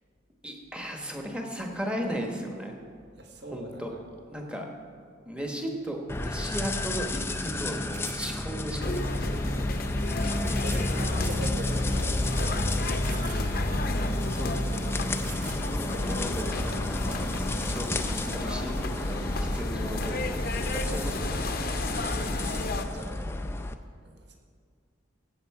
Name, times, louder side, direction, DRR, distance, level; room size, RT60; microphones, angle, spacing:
voice 1, 0.4-2.8 3.5-3.9 4.3-4.7 5.2-9.3 11.7-11.8 14.3-15.0 15.6-17.2 17.7-19.2 19.5-21.5, equal, 5° right, 2 dB, 1.1 m, -36 dB
voice 2, 3.2-4.0 9.8-12.5 21.7-23.3 24.0-24.3, right 1 dB, 55° right, 2 dB, 1.4 m, -43 dB
sound 1, 6.1-23.7, left 2 dB, 10° left, 0.4 m, -32 dB
sound 2, 6.8-6.9 7.9-8.5 9.6-9.7 10.6-10.9 11.2-11.5 12.0-12.1 13.0-13.5 13.8-13.9 14.8-14.9 15.2-15.9 17.1-17.3, right 8 dB, 40° right, 0.6 m, -45 dB
sound 3, 8.8-22.8, left 2 dB, 45° left, 0.7 m, -32 dB
15.0 x 8.1 x 4.7 m, 2.1 s
head